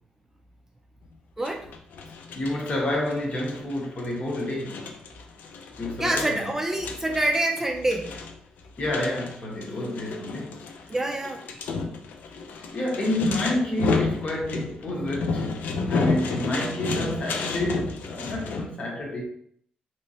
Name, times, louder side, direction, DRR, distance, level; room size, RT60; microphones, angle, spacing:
sound 1, 1.4-18.7, left 4 dB, 80° left, 0.4 m, -32 dB
voice 1, 1.4-1.7 6.0-8.1 10.9-11.4, right 1 dB, 15° right, 0.3 m, -26 dB
voice 2, 2.3-4.8 5.8-6.5 8.8-10.6 12.7-15.5 15.9-19.2, left 1 dB, 45° left, 1.0 m, -29 dB
3.1 x 3.0 x 2.7 m
cardioid pair, 115°, 3 cm